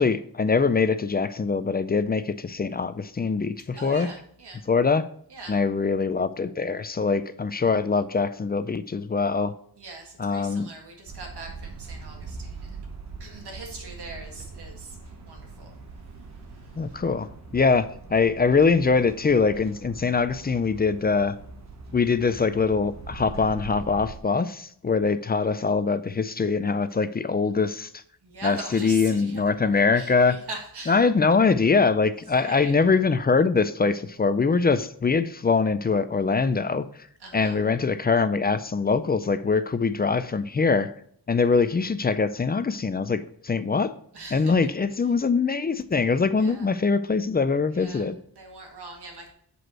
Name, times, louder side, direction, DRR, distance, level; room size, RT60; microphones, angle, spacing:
voice 1, 0.0-4.1 4.7-5.1 5.5-9.5 10.2-10.7 16.8-17.9 18.1-21.4 21.9-28.0 28.4-30.4 30.9-36.8 37.3-40.9 41.3-43.9 44.3-48.2, left 4 dB, 25° left, 12 dB, 0.4 m, -23 dB
voice 2, 3.8-4.6 5.3-5.6 9.8-12.8 13.2-15.8 16.1-17.0 28.2-31.1 32.4-32.8 37.2-37.6 44.1-44.7 46.3-46.7 47.7-49.3, right 3 dB, 70° right, 1 dB, 1.9 m, -42 dB
sound 1, 11.1-24.2, right 4 dB, 40° right, 1.0 m, -42 dB
8.0 x 5.2 x 4.4 m, 0.63 s
wide cardioid pair, 170°, 41 cm